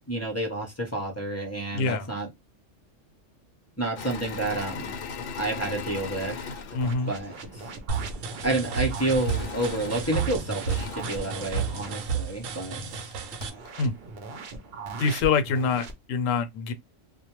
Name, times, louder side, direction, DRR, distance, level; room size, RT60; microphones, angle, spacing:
voice 1, 0.1-2.3 3.8-5.0 5.4-6.4 7.1-7.8 8.4-13.1, right 2 dB, 20° left, 0.4 m, -30 dB
voice 2, 1.7-2.1 6.7-7.1 13.8-13.9 15.0-16.7, left 5 dB, 80° left, 0.9 m, -25 dB
Engine / Mechanisms, 4.0-7.7 9.2-12.1 12.8-12.9 13.1-13.7, left 5 dB, 60° left, 0.6 m, -39 dB
sound 1, 6.8-12.0 13.4-15.9, right 3 dB, 60° right, 0.8 m, -39 dB
sound 2, 7.9-13.5, right 6 dB, 85° right, 1.0 m, -32 dB
2.2 x 2.1 x 2.8 m
omnidirectional pair, 1.3 m